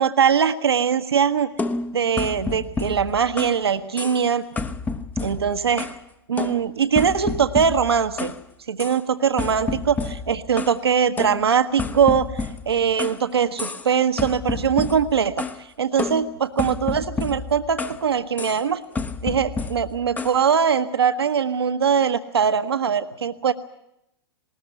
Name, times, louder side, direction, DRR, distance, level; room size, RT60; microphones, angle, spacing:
voice 1, 0.0-1.5 1.9-4.4 5.2-5.9 6.3-8.3 8.7-15.4 15.8-18.8 19.2-23.5, right 7 dB, 75° right, 9 dB, 1.2 m, -21 dB
sound 1, 1.6-3.6 4.0-4.3 4.6-6.0 6.4-8.4 8.8-9.0 9.4-10.8 11.2-13.2 13.6-13.9 14.2-15.6 16.0-18.0 18.4-18.6 18.9-20.4, left 4 dB, 10° left, 0.9 m, -30 dB
20.0 x 19.5 x 9.3 m, 0.81 s
figure-of-eight pair, 110°, 13 cm